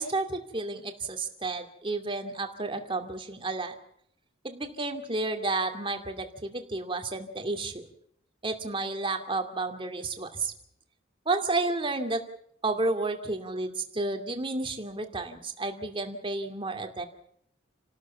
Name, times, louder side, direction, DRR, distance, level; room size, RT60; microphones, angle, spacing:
voice 1, 0.0-3.8 4.4-7.9 8.4-10.5 11.3-12.2 12.6-17.0, right 3 dB, 25° right, 6 dB, 2.5 m, -31 dB
30.0 x 13.0 x 7.2 m, 0.68 s
head